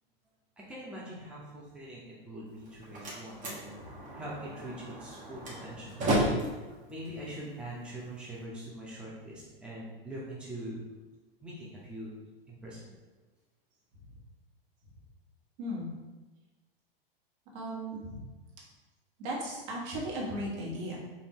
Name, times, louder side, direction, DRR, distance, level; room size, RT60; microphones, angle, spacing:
voice 1, 0.7-6.1 6.9-10.9 11.4-12.2 12.5-12.9, right 1 dB, 5° right, -6 dB, 0.9 m, -43 dB
Slam, 2.5-8.4, right 1 dB, 25° right, 1.3 m, -34 dB
voice 2, 17.5-18.2 19.2-21.0, equal, 45° right, -4 dB, 1.4 m, -36 dB
5.2 x 2.8 x 3.0 m, 1.2 s
hypercardioid pair, 100°, 30 cm